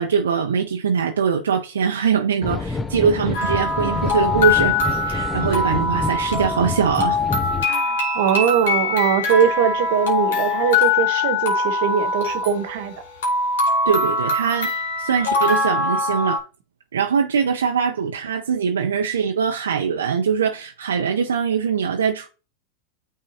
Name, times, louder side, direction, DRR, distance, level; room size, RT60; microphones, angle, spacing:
voice 1, 0.0-4.8 5.0-7.2 13.9-14.7 15.0-16.4 16.9-22.3, right 6 dB, 90° right, 0.6 m, -22 dB
sound 1, 2.4-7.7, left 3 dB, 15° left, 0.6 m, -28 dB
sound 2, 3.3-16.4, left 3 dB, 75° left, 2.0 m, -22 dB
voice 2, 7.7-12.9, right 8 dB, 65° right, 1.1 m, -21 dB
9.1 x 3.6 x 2.8 m
hypercardioid pair, 105°, 0 cm